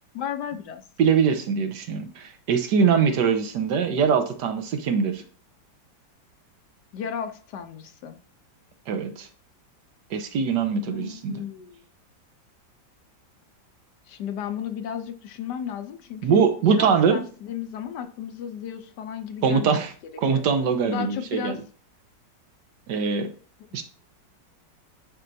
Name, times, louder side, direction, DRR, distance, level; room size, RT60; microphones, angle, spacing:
voice 1, 0.1-0.8 6.9-8.2 10.9-11.8 14.1-19.8 20.3-20.4 20.9-21.6, left 8 dB, 70° left, 9 dB, 1.2 m, -34 dB
voice 2, 1.0-5.2 8.9-9.3 10.1-11.4 16.2-17.2 19.4-19.9 20.2-21.6 22.9-23.3 23.7-23.8, right 6 dB, 70° right, 7 dB, 1.4 m, -22 dB
9.9 x 4.4 x 2.6 m, 0.41 s
omnidirectional pair, 2.0 m